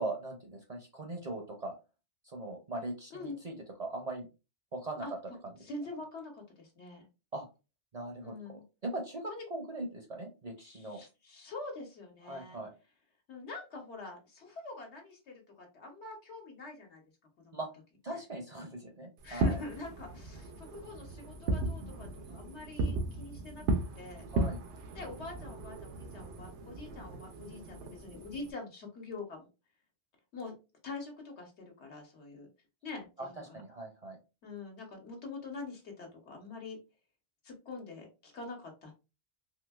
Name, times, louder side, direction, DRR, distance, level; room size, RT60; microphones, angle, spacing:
voice 1, 0.0-1.7 2.2-4.3 4.7-5.0 7.3-7.5 7.9-11.0 12.3-12.7 17.5-17.7 18.0-19.6 24.3-24.6 33.2-33.3 33.5-34.2, right 2 dB, 45° right, 2 dB, 0.6 m, -40 dB
voice 2, 5.6-7.0 8.2-8.6 9.3-9.4 10.6-12.6 13.3-17.0 17.4-17.6 18.1-18.2 19.2-23.7 23.9-24.2 24.9-29.5 30.3-30.5 30.8-32.5 32.8-33.6 34.4-36.8 37.4-38.9, left 3 dB, 75° left, 1 dB, 1.3 m, -45 dB
Fireworks, 19.2-28.5, right 2 dB, 85° right, 0.9 m, -36 dB
3.8 x 2.7 x 2.2 m, 0.29 s
omnidirectional pair, 1.2 m